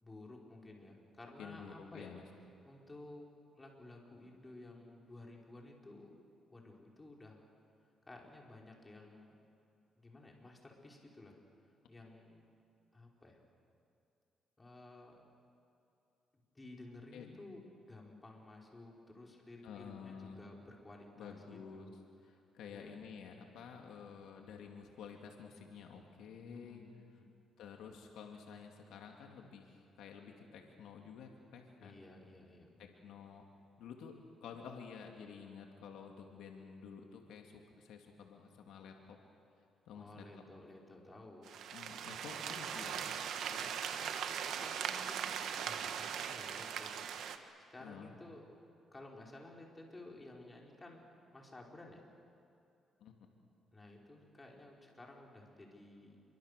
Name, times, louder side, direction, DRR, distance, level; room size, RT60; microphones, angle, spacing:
voice 1, 0.0-2.2 2.6-3.3 3.6-6.1 6.5-7.5 8.1-9.4 10.0-11.4 11.9-12.4 12.9-13.4 14.6-15.2 16.3-21.9 22.7-22.9 26.5-26.9 27.2-27.3 31.8-33.0 39.9-41.5 43.9-47.1 47.6-48.4 48.9-52.0 53.7-56.2, left 2 dB, 20° left, -1 dB, 4.9 m, -54 dB
voice 2, 1.4-2.2 17.1-17.4 19.6-20.4 21.2-21.9 22.2-26.8 27.6-32.0 32.8-33.4 33.8-39.2 39.9-40.3 41.7-43.8 47.8-48.2 53.0-53.1, left 6 dB, 80° left, 2 dB, 2.5 m, -51 dB
sound 1, 41.4-47.4, right 8 dB, 75° right, 1.5 m, -40 dB
28.0 x 24.0 x 6.8 m, 2.7 s
cardioid pair, 90°, 0 cm